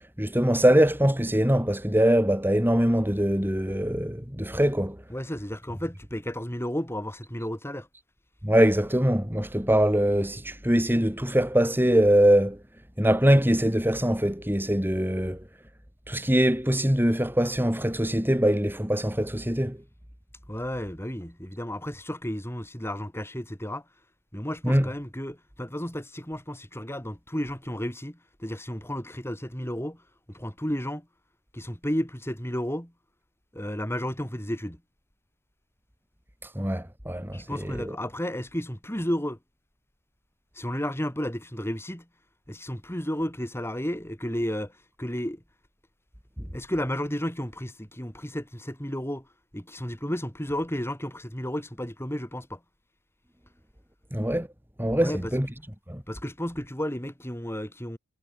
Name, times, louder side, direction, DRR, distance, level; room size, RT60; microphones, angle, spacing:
voice 1, 0.2-5.0 8.4-12.6 13.0-15.4 16.1-19.8 24.6-24.9 36.4-37.5 54.1-54.5 54.8-55.5 55.9-56.0, equal, 10° right, 4.4 m, -23 dB
voice 2, 5.1-7.9 20.5-23.9 24.3-31.1 31.5-32.9 33.5-34.8 37.3-39.4 40.5-42.1 42.5-45.4 46.5-49.3 49.5-52.6 55.0-55.3 56.1-58.0, equal, 10° left, 7.7 m, -32 dB
head